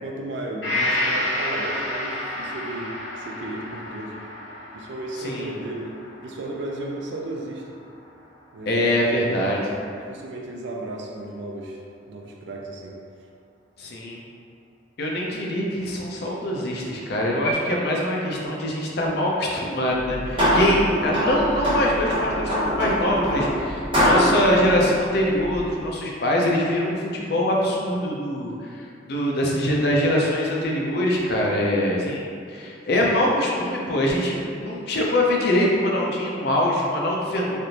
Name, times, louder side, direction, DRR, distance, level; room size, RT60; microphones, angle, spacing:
voice 1, 0.0-4.1 4.7-6.0 6.2-7.6 8.5-9.4 10.1-11.8 12.1-13.0, right 1 dB, 75° right, 0 dB, 0.4 m, -34 dB
Gong, 0.6-8.3 8.6-8.7, left 1 dB, 80° left, 1.4 m, -31 dB
voice 2, 5.2-5.5 8.7-9.7 13.8-14.2 15.0-37.6, left 1 dB, 60° left, -2 dB, 0.5 m, -23 dB
sound 1, 19.9-25.8, equal, 30° right, 0.8 m, -23 dB
3.3 x 2.5 x 2.8 m, 2.4 s
head